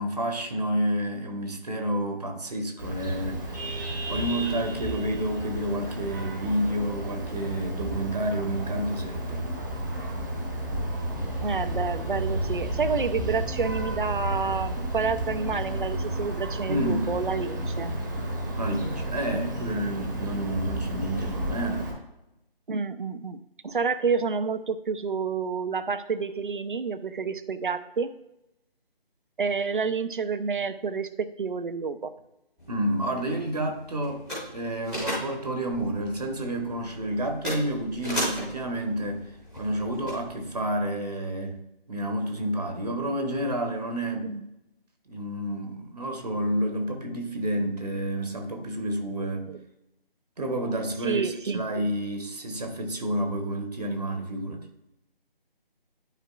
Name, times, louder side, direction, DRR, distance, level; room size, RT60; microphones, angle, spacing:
voice 1, 0.0-9.5 16.7-17.1 18.6-21.9 32.7-34.2 34.5-39.2 39.5-41.6 41.9-44.3 45.1-49.5 50.4-54.6, right 1 dB, 40° right, 4 dB, 1.1 m, -30 dB
Vehicle horn car horn honking, 2.8-21.9, right 1 dB, 20° right, 1.0 m, -32 dB
voice 2, 11.4-17.9 22.7-28.1 29.4-32.1 44.2-44.4 49.5-49.6 51.0-51.9, right 5 dB, 60° right, 11 dB, 0.6 m, -29 dB
sound 1, 32.6-40.6, equal, ahead, 1.0 m, -37 dB
11.5 x 5.0 x 2.3 m, 0.88 s
figure-of-eight pair, 160°, 30 cm